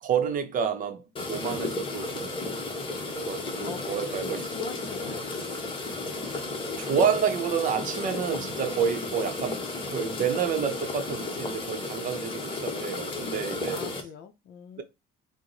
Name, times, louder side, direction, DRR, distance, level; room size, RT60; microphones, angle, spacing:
voice 1, 0.0-1.0 1.3-2.4 3.1-4.5 6.3-6.4 6.8-13.8 14.8-14.9, right 7 dB, 40° right, 0.7 m, -29 dB
sound 1, 1.2-14.0, left 3 dB, 25° left, 0.9 m, -33 dB
voice 2, 3.6-5.3 13.7-14.8, left 8 dB, 55° left, 0.6 m, -42 dB
4.5 x 2.1 x 3.9 m
cardioid pair, 150°, 20 cm